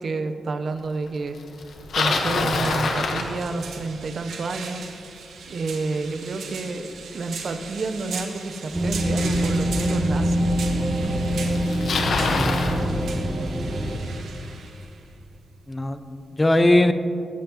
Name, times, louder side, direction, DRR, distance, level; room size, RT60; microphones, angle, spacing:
voice 1, 0.0-1.4 1.9-5.1 5.5-10.5, right 3 dB, 50° right, 8 dB, 0.6 m, -30 dB
Bicycle, 1.6-3.9 9.0-9.1 9.9-10.0 11.0-11.1 11.3-12.8, left 3 dB, 65° left, 1.0 m, -25 dB
sound 1, 1.7-16.4, right 5 dB, 90° right, 1.1 m, -39 dB
sound 2, 8.7-14.0, equal, 15° right, 1.1 m, -24 dB
voice 2, 12.3-13.2 15.7-16.9, left 1 dB, 15° left, 10 dB, 0.4 m, -21 dB
16.5 x 7.8 x 2.9 m, 2.5 s
wide cardioid pair, 135°, 0 cm